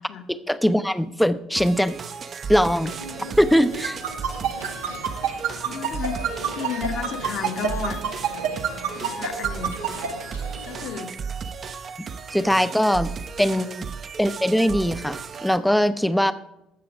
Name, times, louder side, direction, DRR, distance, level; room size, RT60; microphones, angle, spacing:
voice 1, 0.5-2.0 2.5-2.9 3.4-4.0 12.3-13.1 13.4-13.9 14.2-16.3, equal, ahead, 13 dB, 0.6 m, -21 dB
sound 1, 1.6-15.6, right 6 dB, 40° right, 0.7 m, -35 dB
sound 2, 2.8-11.0, right 2 dB, 90° right, 1.4 m, -40 dB
sound 3, 3.8-10.1, right 9 dB, 65° right, 1.2 m, -25 dB
voice 2, 5.6-6.2 6.5-8.0 9.0-9.8 10.6-11.1 12.9-13.2 13.5-13.7 16.3-16.4, left 8 dB, 50° left, 6 dB, 1.2 m, -33 dB
15.0 x 6.9 x 5.0 m, 0.86 s
figure-of-eight pair, 55°, 0 cm